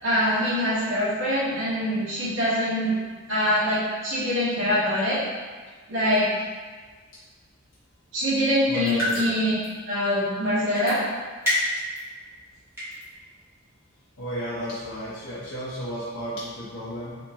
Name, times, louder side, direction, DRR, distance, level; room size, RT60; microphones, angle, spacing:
voice 1, 0.0-2.9 3.3-5.2 5.9-6.3 8.1-9.5 9.9-11.0, equal, 65° right, -10 dB, 1.1 m, -24 dB
voice 2, 8.7-9.2 14.2-17.1, equal, 80° left, -9 dB, 0.8 m, -33 dB
sound 1, 8.7-9.4 9.6-9.7 10.8-10.9 11.4-12.0 12.5-13.0, left 1 dB, 15° right, 1.2 m, -26 dB
3.6 x 2.5 x 2.9 m, 1.5 s
head